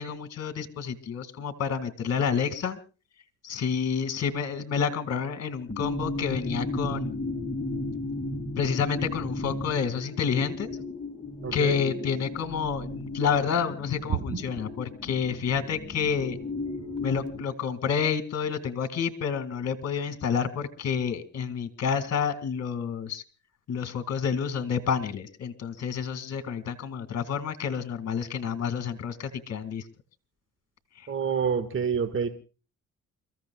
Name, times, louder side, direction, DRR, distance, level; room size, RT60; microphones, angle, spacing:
voice 1, 0.0-2.8 3.4-7.2 8.6-10.7 11.5-16.4 17.0-23.2 23.7-29.8, left 6 dB, 55° left, 11 dB, 2.0 m, -29 dB
sound 1, 5.7-17.4, left 2 dB, 15° left, 2.2 m, -35 dB
voice 2, 11.4-11.7 31.1-32.3, right 6 dB, 40° right, 9 dB, 1.7 m, -27 dB
29.0 x 15.0 x 2.3 m, 0.34 s
cardioid pair, 90°, 30 cm